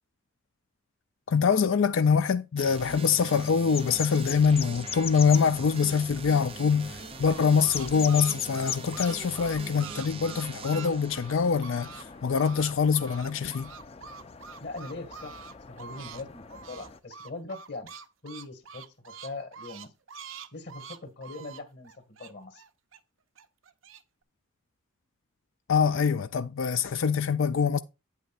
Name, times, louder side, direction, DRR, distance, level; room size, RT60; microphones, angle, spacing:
voice 1, 1.3-13.7 25.7-27.8, left 6 dB, 75° left, 0.4 m, -24 dB
sound 1, 2.6-12.2, right 5 dB, 30° right, 0.5 m, -43 dB
sound 2, 3.7-17.0, left 7 dB, 30° left, 0.5 m, -41 dB
sound 3, 6.9-12.0 12.3-16.2 16.5-23.0 23.4-24.0, right 6 dB, 80° right, 0.7 m, -45 dB
voice 2, 14.6-17.9 18.2-19.9 20.5-22.6, left 2 dB, 55° left, 2.0 m, -41 dB
8.9 x 8.3 x 2.5 m
head